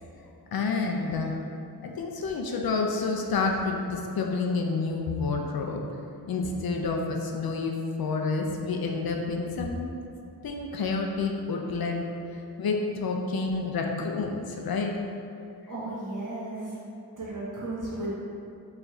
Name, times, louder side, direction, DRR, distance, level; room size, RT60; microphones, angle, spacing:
voice 1, 0.5-1.3 1.8-5.8 6.3-9.9 10.4-12.1 12.6-14.9, left 4 dB, 65° left, 2 dB, 0.5 m, -29 dB
voice 2, 15.7-16.9 17.2-18.1, right 2 dB, 50° right, -8 dB, 1.2 m, -34 dB
4.6 x 3.2 x 2.6 m, 2.6 s
wide cardioid pair, 95°, 40 cm